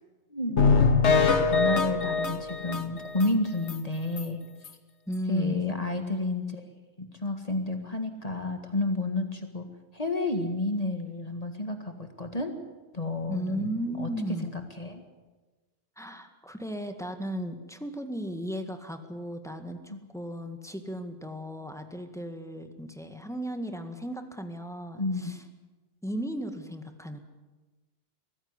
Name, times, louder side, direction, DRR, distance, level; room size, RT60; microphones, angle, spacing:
voice 1, 0.3-0.6 1.1-4.4 5.3-6.7 7.0-9.7 9.9-12.5 12.9-14.1 14.4-15.0 19.9-20.0 25.0-25.3, left 2 dB, 35° left, 6 dB, 2.0 m, -31 dB
sound 1, 0.6-3.3 3.7-3.8 4.2-4.3 4.6-4.7, left 4 dB, 85° left, 1.5 m, -23 dB
voice 2, 5.1-5.6 13.3-14.5 16.0-25.4 26.0-27.2, equal, 5° left, 6 dB, 1.9 m, -35 dB
22.5 x 15.5 x 9.7 m, 1.2 s
omnidirectional pair, 1.1 m